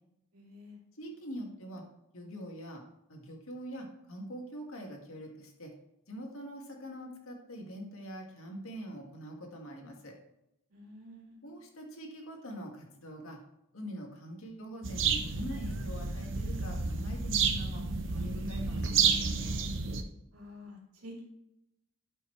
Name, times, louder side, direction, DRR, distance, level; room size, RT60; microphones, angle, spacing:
voice 1, 0.3-0.8 10.7-11.4 20.3-21.2, left 1 dB, 90° right, -2 dB, 2.7 m, -49 dB
voice 2, 1.0-1.8 2.1-2.8 3.1-5.7 6.1-10.2 11.4-13.4 13.7-17.8 18.1-19.5, equal, 75° left, 1 dB, 1.9 m, -44 dB
sound 1, 14.8-20.0, right 5 dB, 60° right, 0.8 m, -30 dB
12.0 x 5.5 x 3.3 m, 0.84 s
head